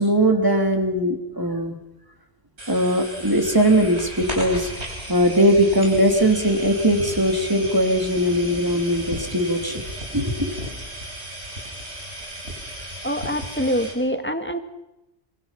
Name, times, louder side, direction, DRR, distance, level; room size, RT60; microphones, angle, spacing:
voice 1, 0.0-1.8 2.7-4.7 5.1-9.8 10.1-10.5, equal, 20° right, 4 dB, 3.0 m, -20 dB
sound 1, 2.6-13.9, right 1 dB, 75° right, 7.1 m, -34 dB
voice 2, 13.0-14.6, equal, 10° left, 7 dB, 1.8 m, -25 dB
27.0 x 25.0 x 5.8 m, 0.94 s
omnidirectional pair, 1.1 m